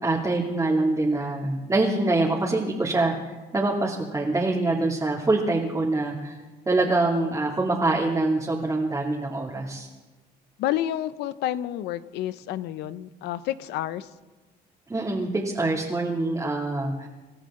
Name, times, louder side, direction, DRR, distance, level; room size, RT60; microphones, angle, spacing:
voice 1, 0.0-6.4 6.7-9.9 14.9-17.1, right 2 dB, 20° right, -4 dB, 2.6 m, -25 dB
voice 2, 10.6-14.1, left 12 dB, 85° left, 14 dB, 0.8 m, -30 dB
27.5 x 13.5 x 3.8 m, 1.2 s
cardioid pair, 110°, 17 cm